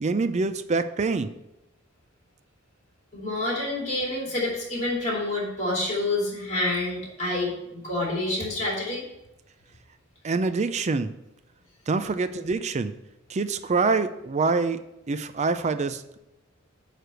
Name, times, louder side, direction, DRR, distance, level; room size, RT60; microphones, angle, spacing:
voice 1, 0.0-1.3 10.2-11.1 11.9-12.9 13.3-16.2, right 4 dB, 30° right, 11 dB, 0.4 m, -25 dB
voice 2, 3.1-9.0 12.1-12.2, left 2 dB, 35° left, -4 dB, 2.8 m, -28 dB
9.0 x 3.4 x 6.2 m, 0.90 s
head